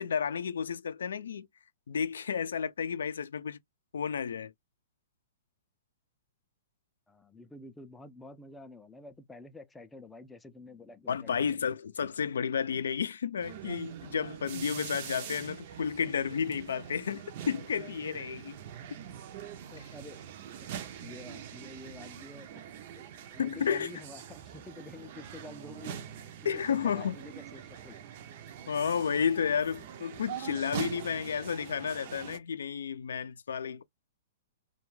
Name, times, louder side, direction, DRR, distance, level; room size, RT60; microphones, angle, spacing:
voice 1, 0.0-1.5 1.9-3.6 3.9-4.5 11.1-18.6 23.4-23.9 26.4-27.2 28.7-33.8, left 7 dB, 90° left, 0.4 m, -32 dB
voice 2, 7.1-11.7 19.7-20.2 20.6-20.7 21.0-22.7 23.3-28.0, left 2 dB, 5° left, 0.3 m, -49 dB
sound 1, 13.4-32.4, right 9 dB, 50° right, 0.5 m, -44 dB
2.3 x 2.2 x 3.1 m
hypercardioid pair, 150°, 0 cm